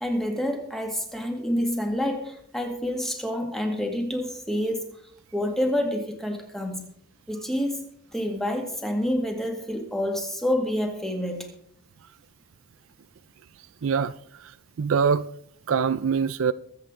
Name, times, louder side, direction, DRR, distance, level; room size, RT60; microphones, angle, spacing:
voice 1, 0.0-4.9 5.3-6.8 7.3-11.5, left 1 dB, ahead, 2.0 m, -28 dB
voice 2, 13.8-15.3 15.7-16.5, right 6 dB, 65° right, 0.4 m, -24 dB
22.5 x 8.1 x 3.8 m
head